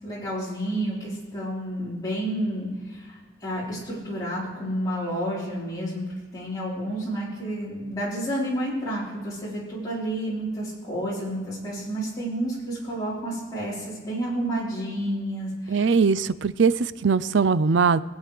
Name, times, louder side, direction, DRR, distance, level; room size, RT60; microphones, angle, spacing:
voice 1, 0.0-6.0 6.3-15.9, right 1 dB, 20° left, -8 dB, 4.3 m, -30 dB
voice 2, 15.7-18.0, right 5 dB, 75° right, 16 dB, 0.5 m, -21 dB
22.5 x 8.2 x 3.4 m, 1.4 s
head